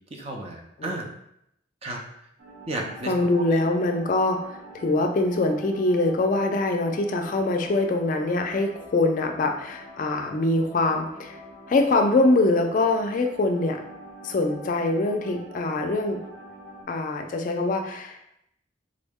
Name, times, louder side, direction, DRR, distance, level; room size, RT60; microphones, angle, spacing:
voice 1, 0.1-1.1 1.8-2.0 2.7-3.6, right 2 dB, 30° right, 1 dB, 0.5 m, -33 dB
sound 1, 2.4-16.8, right 1 dB, 85° right, 1.0 m, -45 dB
voice 2, 3.1-11.4 11.7-13.8 14.2-16.2 16.9-18.2, left 2 dB, 45° left, 4 dB, 0.3 m, -23 dB
3.7 x 2.0 x 3.5 m, 0.75 s
head